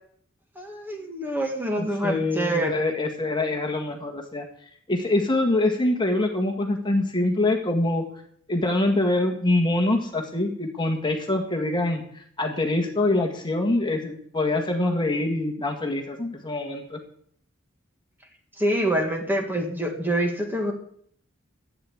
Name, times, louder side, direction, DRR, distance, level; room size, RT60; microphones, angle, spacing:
voice 1, 0.6-2.7 18.6-20.7, right 1 dB, 10° right, 3 dB, 2.0 m, -26 dB
voice 2, 2.0-4.4 4.9-8.0 8.5-17.0, left 2 dB, 25° left, 3 dB, 1.7 m, -24 dB
12.0 x 8.7 x 9.5 m, 0.64 s
head